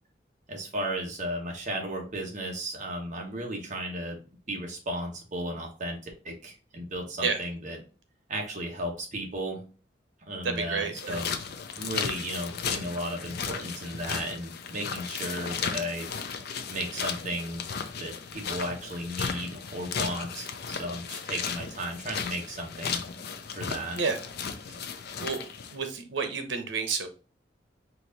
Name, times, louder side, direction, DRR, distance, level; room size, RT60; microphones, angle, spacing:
voice 1, 0.5-4.2 4.5-7.8 8.3-9.6 10.2-11.3 11.8-16.1 16.7-17.7 18.0-23.0 23.5-24.0, right 1 dB, 45° right, 0 dB, 1.3 m, -34 dB
voice 2, 10.4-11.2 24.0-24.2 24.7-24.9 25.2-25.4 25.7-27.1, right 5 dB, 90° right, 7 dB, 0.9 m, -30 dB
sound 1, 10.9-25.8, left 6 dB, 60° left, 0.5 m, -35 dB
4.5 x 2.7 x 3.9 m, 0.36 s
head